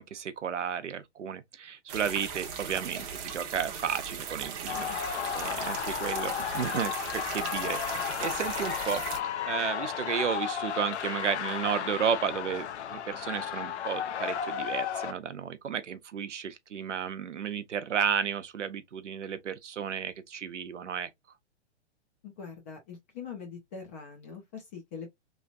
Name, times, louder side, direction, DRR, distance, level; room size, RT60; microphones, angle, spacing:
voice 1, 0.0-9.0 9.4-21.1, right 7 dB, 85° right, 0.7 m, -33 dB
sound 1, 1.9-9.2, right 7 dB, 25° right, 0.6 m, -38 dB
sound 2, 4.7-15.1, left 9 dB, 70° left, 0.6 m, -33 dB
voice 2, 4.9-5.3 22.2-25.1, left 6 dB, 15° left, 0.3 m, -43 dB
3.1 x 2.4 x 2.7 m
hypercardioid pair, 125°, 35 cm